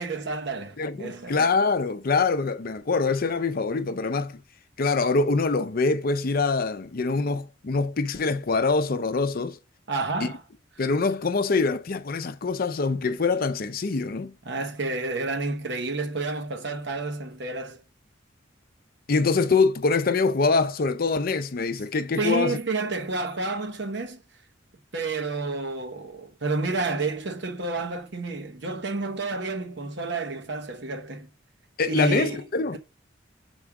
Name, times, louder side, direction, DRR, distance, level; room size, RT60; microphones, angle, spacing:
voice 1, 0.0-1.4 9.9-10.4 14.5-17.8 22.2-24.2 24.9-31.3 31.9-32.4 32.7-32.8, right 3 dB, 65° right, 1.1 m, -30 dB
voice 2, 0.8-4.3 4.8-9.6 10.2-10.3 10.8-14.3 19.1-22.6 31.8-32.8, left 4 dB, 50° left, 0.6 m, -24 dB
4.9 x 4.4 x 5.9 m
head